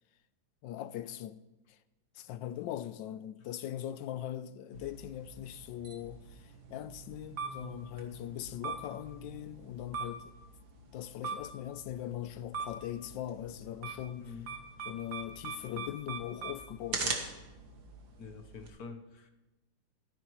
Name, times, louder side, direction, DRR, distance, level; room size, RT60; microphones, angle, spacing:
voice 1, 0.6-1.4 1.7-1.8 2.1-10.3 10.9-14.4 14.9-17.3, left 12 dB, 80° left, 1.3 m, -41 dB
sound 1, 4.7-18.7, right 4 dB, 60° right, 1.9 m, -42 dB
voice 2, 18.2-19.3, left 5 dB, 60° left, 1.2 m, -46 dB
15.0 x 13.5 x 3.1 m
omnidirectional pair, 2.0 m